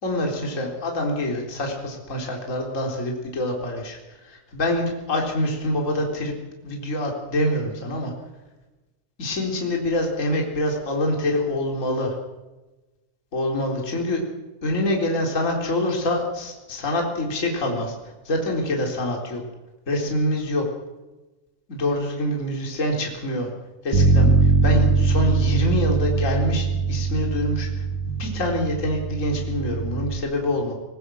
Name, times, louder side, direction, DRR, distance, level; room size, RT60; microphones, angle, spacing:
voice 1, 0.0-6.3 6.6-8.1 9.2-12.1 13.3-14.2 14.6-17.9 18.2-19.4 19.9-20.6 21.7-23.5 23.8-27.7 28.0-30.7, left 1 dB, 25° left, 0 dB, 4.0 m, -25 dB
Bass guitar, 23.9-30.2, right 4 dB, 70° right, 3.1 m, -21 dB
24.5 x 20.0 x 6.3 m, 1.1 s
omnidirectional pair, 3.5 m